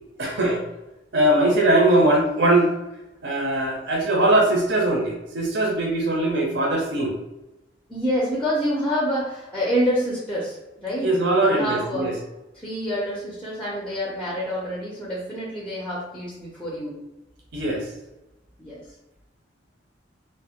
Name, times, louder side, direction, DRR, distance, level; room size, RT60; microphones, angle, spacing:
voice 1, 0.2-0.6 1.1-2.7 3.2-7.2 11.0-12.1 17.5-17.9, right 1 dB, 60° right, -2 dB, 0.6 m, -21 dB
voice 2, 7.9-11.1 11.4-12.1 12.5-16.9 18.6-18.8, equal, 5° left, -5 dB, 0.5 m, -27 dB
2.5 x 2.0 x 3.5 m, 0.96 s
head